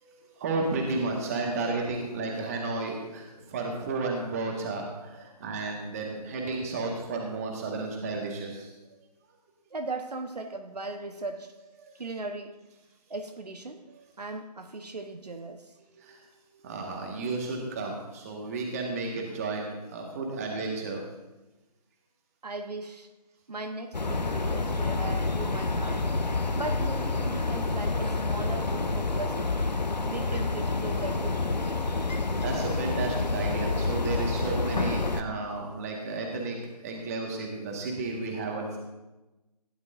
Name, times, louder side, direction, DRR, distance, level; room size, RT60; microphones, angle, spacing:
voice 1, 0.0-8.7 16.0-16.2 16.6-21.0 31.9-32.0 32.4-38.8, right 3 dB, 20° right, 0 dB, 1.7 m, -32 dB
voice 2, 9.7-11.5 12.0-12.5 13.1-13.8 14.2-15.7 22.4-23.1 23.5-26.1 26.5-29.4 30.0-31.7, right 3 dB, 70° right, 5 dB, 1.1 m, -38 dB
sound 1, 23.9-35.2, left 3 dB, 85° left, 0.9 m, -28 dB
16.0 x 10.5 x 2.6 m, 1.1 s
figure-of-eight pair, 155°, 21 cm